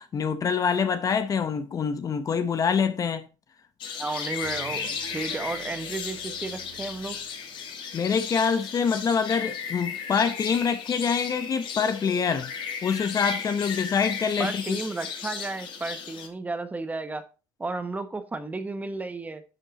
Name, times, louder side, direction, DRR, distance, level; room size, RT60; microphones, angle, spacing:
voice 1, 0.0-3.2 7.9-12.5 12.8-14.8, left 6 dB, 35° left, 0.9 m, -25 dB
sound 1, 3.8-16.3, left 6 dB, 50° left, 2.1 m, -35 dB
voice 2, 4.0-7.2 14.4-17.2 17.6-19.4, right 3 dB, 15° right, 1.1 m, -33 dB
sound 2, 4.4-8.1, right 7 dB, 65° right, 2.3 m, -48 dB
10.5 x 5.4 x 4.2 m
supercardioid pair, 110°, 11 cm